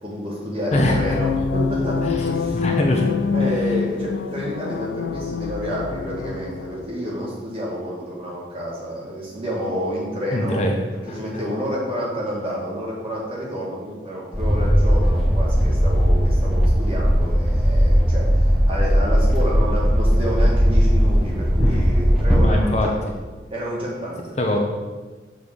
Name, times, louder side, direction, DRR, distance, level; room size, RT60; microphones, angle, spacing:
voice 1, 0.0-2.6 3.3-22.9 23.5-24.2, equal, 30° right, -5 dB, 1.9 m, -29 dB
sound 1, 0.7-6.9, left 5 dB, 75° left, 0.4 m, -25 dB
voice 2, 0.7-1.2 2.0-2.2 2.5-3.1 10.3-10.7 11.1-11.4 21.6-21.8 22.4-22.9 24.4-24.6, left 1 dB, 35° left, 1 dB, 0.8 m, -22 dB
sound 2, 14.3-22.4, equal, ahead, 0.8 m, -18 dB
7.0 x 3.8 x 6.5 m, 1.3 s
head